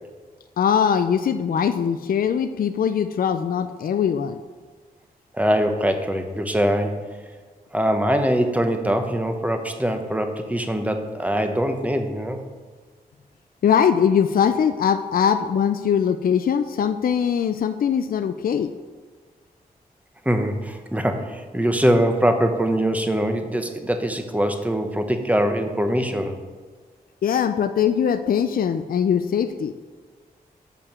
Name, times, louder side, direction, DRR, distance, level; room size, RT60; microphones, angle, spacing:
voice 1, 0.6-4.4 13.6-18.7 27.2-29.7, left 8 dB, 65° left, 9 dB, 0.4 m, -21 dB
voice 2, 5.3-7.1 7.7-12.4 20.2-26.4, equal, 10° right, 6 dB, 1.0 m, -22 dB
6.9 x 5.8 x 6.7 m, 1.4 s
cardioid pair, 75°, 16 cm